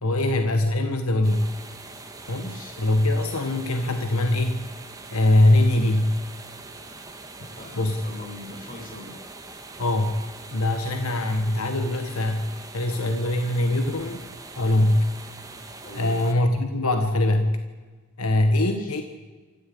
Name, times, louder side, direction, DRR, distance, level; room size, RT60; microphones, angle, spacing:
voice 1, 0.0-1.5 2.3-4.6 5.1-6.1 7.8-8.0 9.8-10.2 10.5-12.4 12.7-14.2 14.6-15.0 15.9-17.6 18.2-19.0, left 1 dB, 85° left, 6 dB, 1.5 m, -22 dB
sound 1, 1.2-16.3, right 3 dB, 15° right, 1.7 m, -42 dB
voice 2, 2.3-2.8 7.4-9.2 15.8-16.2 18.5-19.0, left 2 dB, 40° left, 2 dB, 4.7 m, -43 dB
27.5 x 14.0 x 8.6 m, 1.3 s
head